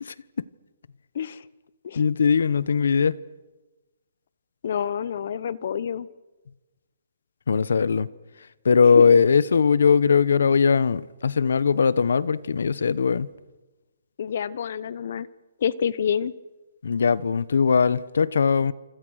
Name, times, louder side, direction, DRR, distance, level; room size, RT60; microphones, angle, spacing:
voice 1, 2.0-3.2 7.5-8.1 8.6-13.3 16.8-18.7, left 6 dB, 80° left, 1.0 m, -20 dB
voice 2, 4.6-6.1 8.9-9.1 14.2-15.3 15.6-16.3, left 8 dB, 55° left, 0.9 m, -28 dB
27.0 x 26.0 x 6.5 m
hypercardioid pair, 165°, 0 cm